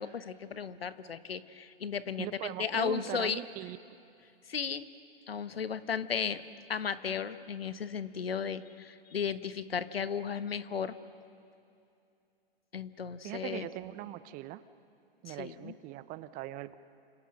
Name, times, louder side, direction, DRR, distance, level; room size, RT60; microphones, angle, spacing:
voice 1, 0.0-3.4 4.5-4.9 5.3-6.4 6.7-10.9 12.7-13.7 15.3-15.7, left 7 dB, 80° left, 13 dB, 1.3 m, -35 dB
voice 2, 2.2-3.8 13.2-14.6 15.2-16.8, right 14 dB, 30° right, 15 dB, 0.8 m, -40 dB
29.5 x 27.0 x 6.5 m, 2.6 s
figure-of-eight pair, 115°, 29 cm